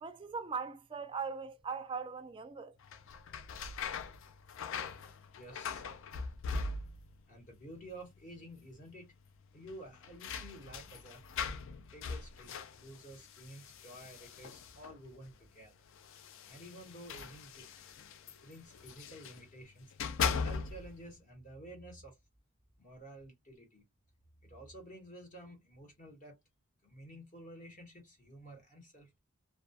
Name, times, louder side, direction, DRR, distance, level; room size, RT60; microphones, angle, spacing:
voice 1, 0.0-2.7, right 5 dB, 25° right, 0.3 m, -40 dB
sound 1, 2.8-7.2 7.5-8.2 8.5-8.6 9.6-15.1 15.9-19.4 19.8-21.0, left 5 dB, 60° left, 0.3 m, -40 dB
voice 2, 5.3-6.1 7.3-9.1 9.5-11.2 11.9-15.7 16.1-17.7 18.4-19.9 20.4-22.2 22.8-23.8 24.4-26.4 26.8-29.2, right 1 dB, 35° left, 1.0 m, -51 dB
2.2 x 2.2 x 2.6 m
head